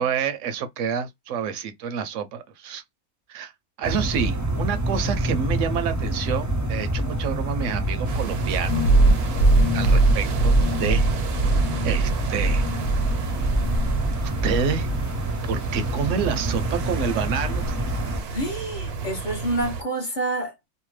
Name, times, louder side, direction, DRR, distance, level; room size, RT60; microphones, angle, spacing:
voice 1, 0.0-2.8 3.3-3.5 3.8-8.8 9.7-11.1 11.8-12.7 14.2-14.9 15.4-17.8, right 7 dB, 70° right, 0.8 m, -28 dB
sound 1, 3.8-18.2, right 1 dB, 20° right, 0.4 m, -27 dB
sound 2, 8.0-19.8, right 4 dB, 85° right, 1.2 m, -33 dB
sound 3, 8.7-14.1 14.4-15.1, right 2 dB, 75° left, 1.0 m, -21 dB
voice 2, 18.3-20.5, right 2 dB, 40° left, 0.8 m, -28 dB
2.8 x 2.2 x 3.0 m
omnidirectional pair, 1.5 m